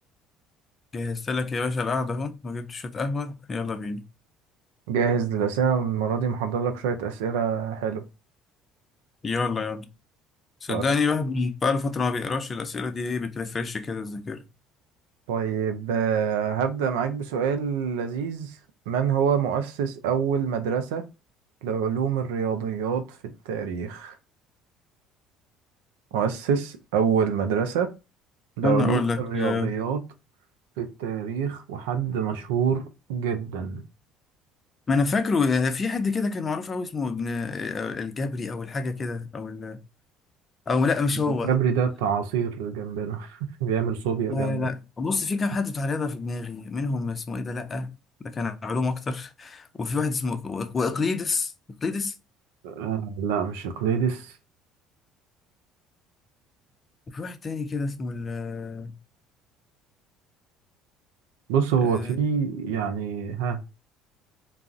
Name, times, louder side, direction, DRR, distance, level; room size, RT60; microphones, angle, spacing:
voice 1, 0.9-4.0 9.2-9.9 10.6-14.4 28.6-29.7 34.9-39.8 40.7-41.5 44.3-47.9 48.2-51.5 51.8-52.1 57.1-58.9 61.8-62.2, left 4 dB, 35° left, 0.4 m, -27 dB
voice 2, 4.9-8.0 10.7-11.0 15.3-18.6 18.9-21.0 21.6-23.2 23.5-24.2 26.1-27.9 28.6-30.0 30.8-33.8 41.4-44.7 52.6-54.3 61.5-63.6, right 7 dB, 80° right, 0.4 m, -26 dB
2.3 x 2.0 x 3.5 m
hypercardioid pair, 70°, 0 cm